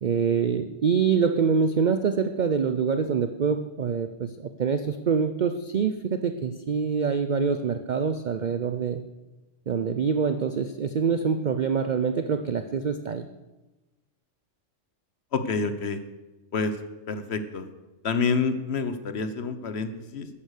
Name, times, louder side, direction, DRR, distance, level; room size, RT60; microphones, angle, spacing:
voice 1, 0.0-9.0 9.7-13.3, right 6 dB, 50° right, 10 dB, 0.6 m, -25 dB
voice 2, 15.3-16.0 16.5-16.7 17.1-17.7 18.0-20.3, left 4 dB, 55° left, 10 dB, 1.2 m, -28 dB
13.0 x 10.0 x 6.6 m, 1.1 s
omnidirectional pair, 1.3 m